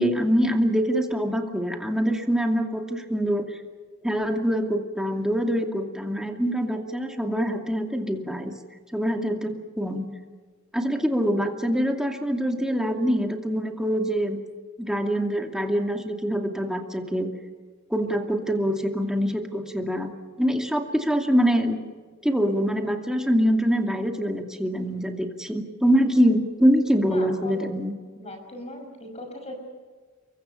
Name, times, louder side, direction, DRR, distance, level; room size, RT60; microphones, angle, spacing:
voice 1, 0.0-3.5 4.0-8.5 8.9-10.1 10.7-14.4 14.8-17.3 17.9-20.1 20.4-21.8 22.2-27.9, equal, 5° right, 3 dB, 2.5 m, -24 dB
voice 2, 27.1-27.5 28.2-29.6, left 1 dB, 30° left, 4 dB, 5.8 m, -39 dB
28.5 x 23.5 x 5.7 m, 1.5 s
head